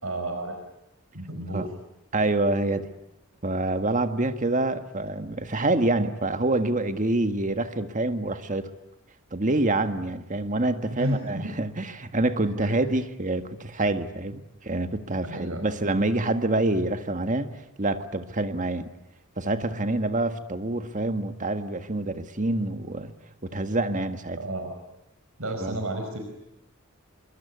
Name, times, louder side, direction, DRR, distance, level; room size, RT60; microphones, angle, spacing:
voice 1, 0.0-0.5 1.1-1.7 11.0-11.5 12.6-12.8 15.2-15.7 24.4-24.8 25.4-26.2, right 1 dB, 80° right, 4 dB, 5.0 m, -32 dB
voice 2, 2.1-2.9 3.4-8.7 9.3-17.5 17.8-18.9 19.4-23.1 23.4-24.4 25.6-25.8, right 2 dB, 40° right, 8 dB, 1.7 m, -26 dB
25.5 x 23.5 x 9.6 m, 0.87 s
head